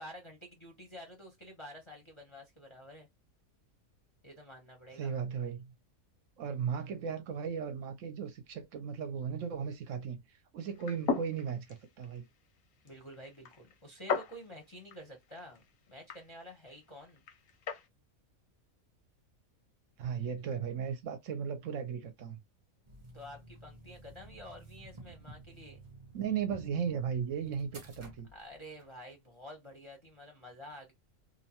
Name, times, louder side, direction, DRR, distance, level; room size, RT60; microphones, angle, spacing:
voice 1, 0.0-3.1 4.2-5.1 12.8-15.6 15.9-17.2 23.1-25.8 28.3-30.9, equal, 30° left, 0.6 m, -50 dB
voice 2, 4.9-5.7 6.4-12.2 20.0-22.4 26.1-28.3, right 7 dB, 70° right, 0.9 m, -36 dB
sound 1, 10.7-17.9, left 6 dB, 85° left, 1.2 m, -40 dB
sound 2, 22.8-28.9, right 2 dB, 30° right, 0.6 m, -52 dB
2.8 x 2.1 x 2.7 m
omnidirectional pair, 1.5 m